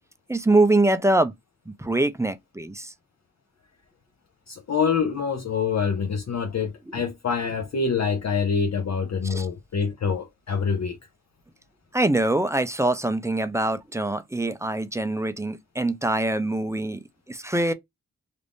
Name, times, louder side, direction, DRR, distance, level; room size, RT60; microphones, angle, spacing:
voice 1, 0.3-1.3 1.7-2.9 9.2-9.5 11.9-17.0 17.3-17.7, right 2 dB, 10° right, 0.4 m, -23 dB
voice 2, 4.5-11.0, left 6 dB, 60° left, 0.5 m, -26 dB
2.5 x 2.5 x 3.4 m
wide cardioid pair, 55°, 31 cm